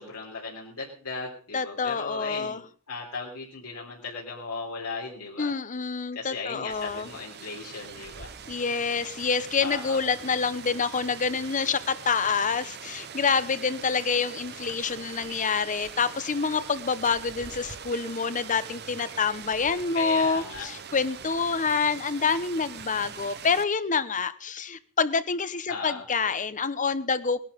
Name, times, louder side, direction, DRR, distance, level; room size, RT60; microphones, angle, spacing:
voice 1, 0.0-5.5 6.1-8.3 9.6-10.0 20.0-20.7 25.7-26.0, left 4 dB, 85° left, -2 dB, 3.6 m, -37 dB
voice 2, 1.5-2.6 5.4-7.1 8.5-27.5, left 5 dB, 35° left, 15 dB, 0.9 m, -27 dB
Rain, 6.7-23.6, right 7 dB, 50° right, 0.9 m, -42 dB
19.5 x 11.5 x 5.2 m, 0.43 s
head